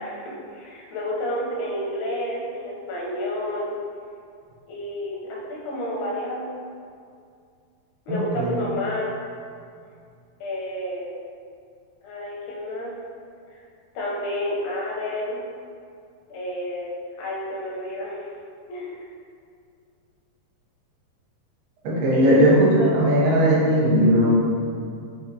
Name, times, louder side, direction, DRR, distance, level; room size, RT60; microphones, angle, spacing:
voice 1, 0.0-3.8 4.7-6.5 8.1-9.1 10.4-11.1 12.0-12.9 13.5-13.6 14.0-15.4 16.3-16.9 17.2-18.3 18.7-19.1 22.1-22.4 22.7-23.0, left 1 dB, 85° left, -4 dB, 2.7 m, -30 dB
voice 2, 8.1-8.6 21.8-22.7 22.9-24.3, equal, 80° right, -6 dB, 2.7 m, -18 dB
6.4 x 2.8 x 2.7 m, 2.3 s
omnidirectional pair, 4.7 m